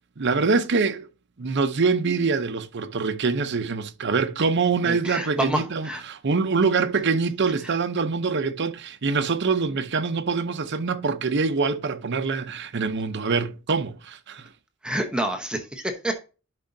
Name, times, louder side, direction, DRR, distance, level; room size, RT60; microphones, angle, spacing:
voice 1, 0.2-1.1 1.4-14.5, right 4 dB, 55° right, 0.7 m, -24 dB
voice 2, 4.9-6.0 14.8-16.1, right 1 dB, 5° right, 0.9 m, -28 dB
11.0 x 5.3 x 2.7 m
head